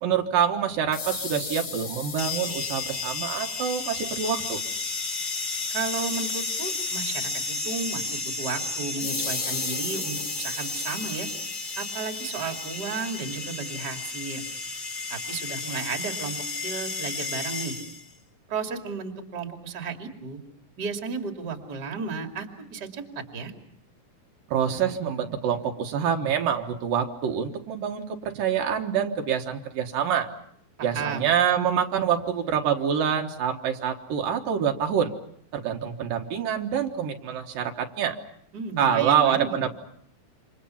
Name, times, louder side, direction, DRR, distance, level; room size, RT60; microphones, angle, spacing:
voice 1, 0.0-4.6 24.5-30.3 30.8-35.1 35.5-38.2 38.8-39.7, right 8 dB, 75° right, 3 dB, 3.1 m, -26 dB
sound 1, 0.9-4.7 9.0-13.7, left 5 dB, 80° left, 0.7 m, -37 dB
sound 2, 2.2-18.1, left 3 dB, 35° left, 1.5 m, -32 dB
voice 2, 5.7-11.3 11.8-14.4 15.1-17.7 18.5-20.4 20.8-23.5 30.8-31.3 38.5-39.6, right 4 dB, 30° right, 3 dB, 2.7 m, -33 dB
28.5 x 26.5 x 5.7 m, 0.68 s
omnidirectional pair, 4.0 m